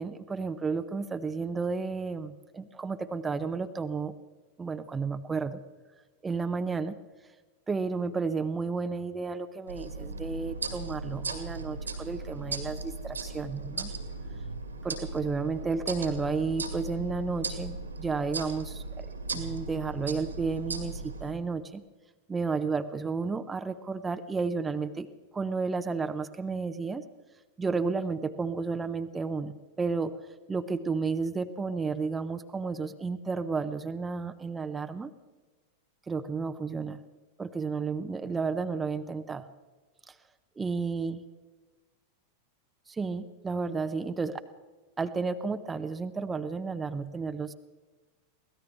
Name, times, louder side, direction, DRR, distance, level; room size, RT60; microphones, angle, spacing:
voice 1, 0.0-4.1 4.6-5.6 6.2-7.0 7.7-13.9 14.8-19.1 19.3-21.8 22.3-25.1 25.3-27.0 27.6-30.1 30.5-35.1 36.1-37.0 37.4-39.5 40.1-40.2 40.6-41.2 42.9-44.4 45.0-47.5, right 4 dB, 15° right, 10 dB, 0.7 m, -32 dB
sound 1, 9.7-21.3, right 3 dB, 75° right, 2.0 m, -37 dB
23.5 x 17.0 x 3.4 m, 1.3 s
figure-of-eight pair, 90°, 0 cm